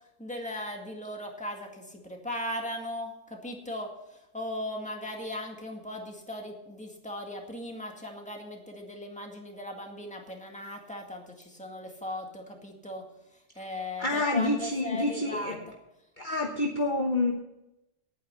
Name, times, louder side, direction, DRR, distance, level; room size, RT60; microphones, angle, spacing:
voice 1, 0.2-3.9 4.3-13.0 13.6-15.7, left 1 dB, 5° left, 1 dB, 1.9 m, -38 dB
voice 2, 14.0-15.6 16.2-17.3, left 2 dB, 35° left, 2 dB, 1.2 m, -28 dB
10.5 x 9.2 x 6.8 m, 0.91 s
omnidirectional pair, 1.5 m